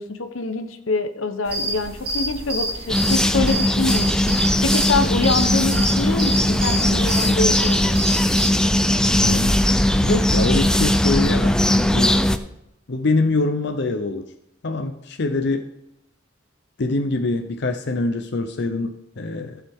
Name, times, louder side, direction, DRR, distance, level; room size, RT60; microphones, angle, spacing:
voice 1, 0.0-4.3 4.6-8.0, left 3 dB, 90° left, 8 dB, 1.0 m, -25 dB
sound 1, 1.5-8.5, right 1 dB, 55° right, 2.3 m, -28 dB
sound 2, 2.9-12.4, left 1 dB, 5° left, 0.5 m, -19 dB
voice 2, 9.2-9.6 10.0-12.2 12.9-14.3 14.6-15.7 16.8-19.6, left 3 dB, 60° left, 6 dB, 0.7 m, -24 dB
15.5 x 7.1 x 3.6 m, 0.84 s
head